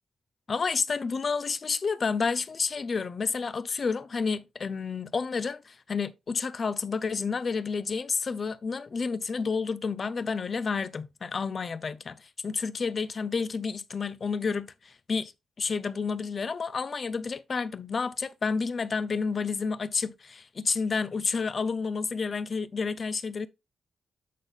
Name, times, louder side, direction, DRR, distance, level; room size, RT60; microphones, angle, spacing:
voice 1, 0.5-15.3 15.6-23.5, left 5 dB, 50° left, 0.6 m, -30 dB
8.4 x 4.0 x 3.3 m
cardioid pair, 70°, 0 cm